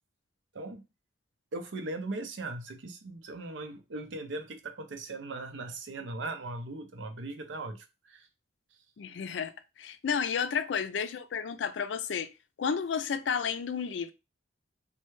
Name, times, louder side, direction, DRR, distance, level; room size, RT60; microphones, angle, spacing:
voice 1, 1.5-8.3 8.7-8.8, right 2 dB, 85° right, 0.6 m, -39 dB
voice 2, 9.0-9.5 9.8-12.3 12.6-14.1, left 6 dB, 75° left, 0.4 m, -31 dB
3.2 x 2.2 x 3.1 m
head